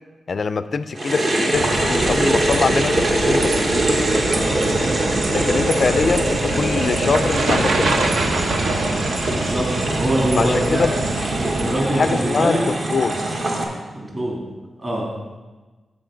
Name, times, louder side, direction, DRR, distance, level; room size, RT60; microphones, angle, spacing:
voice 1, 0.3-3.7 5.3-7.9 10.4-10.9 11.9-13.2, left 4 dB, 45° left, 13 dB, 0.3 m, -23 dB
sound 1, 0.9-13.6, right 1 dB, 45° right, 1.3 m, -23 dB
sound 2, 1.5-11.8, right 2 dB, 70° right, 0.9 m, -25 dB
voice 2, 9.3-11.0 11.4-12.7 13.9-14.4 14.8-15.0, right 1 dB, 30° right, -3 dB, 2.6 m, -23 dB
15.0 x 5.1 x 3.8 m, 1.2 s
wide cardioid pair, 165°, 0 cm